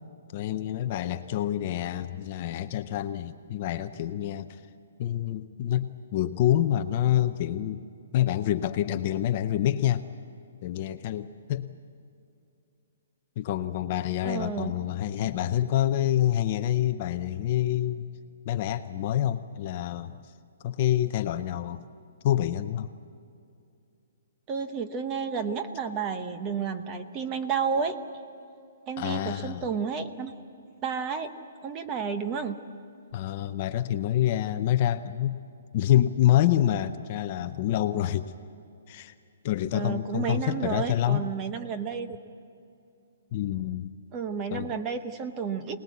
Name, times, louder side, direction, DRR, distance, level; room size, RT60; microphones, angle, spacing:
voice 1, 0.3-4.6 5.0-7.8 8.1-10.0 10.6-11.7 13.4-18.1 18.5-20.2 20.6-21.8 22.2-22.9 29.0-29.6 33.1-35.4 35.7-38.3 38.9-39.1 39.4-41.2 43.3-43.9 44.5-44.7, left 12 dB, 25° left, 9 dB, 0.6 m, -27 dB
voice 2, 14.2-14.7 24.5-28.0 28.9-30.3 30.8-31.3 31.6-32.6 39.7-42.2 44.1-45.8, right 6 dB, 15° right, 8 dB, 0.8 m, -31 dB
25.5 x 19.5 x 8.3 m, 2.5 s
hypercardioid pair, 180°, 0 cm